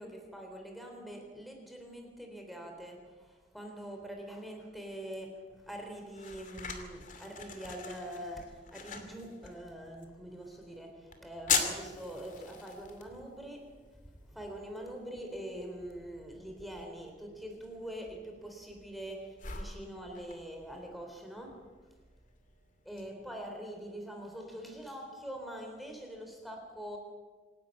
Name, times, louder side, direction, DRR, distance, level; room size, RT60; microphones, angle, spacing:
voice 1, 0.0-13.8 14.2-21.6 22.9-27.0, equal, ahead, 2 dB, 3.6 m, -44 dB
sound 1, 5.5-23.0, left 6 dB, 45° left, 2.6 m, -42 dB
26.5 x 12.0 x 9.1 m, 1.4 s
head